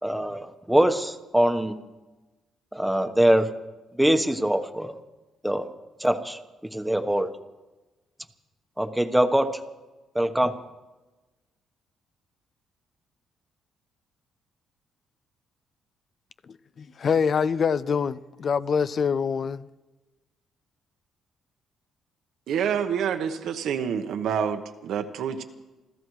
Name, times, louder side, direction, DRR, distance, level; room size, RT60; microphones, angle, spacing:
voice 1, 0.0-1.7 2.7-3.5 4.0-5.0 5.4-5.7 6.0-6.4 6.7-7.3 8.8-9.5 10.1-10.6, right 1 dB, 5° right, 1.1 m, -23 dB
voice 2, 16.5-19.6, left 6 dB, 50° left, 0.5 m, -25 dB
voice 3, 22.5-25.4, right 7 dB, 75° right, 1.1 m, -27 dB
28.0 x 14.5 x 3.2 m
cardioid pair, 90°, 0 cm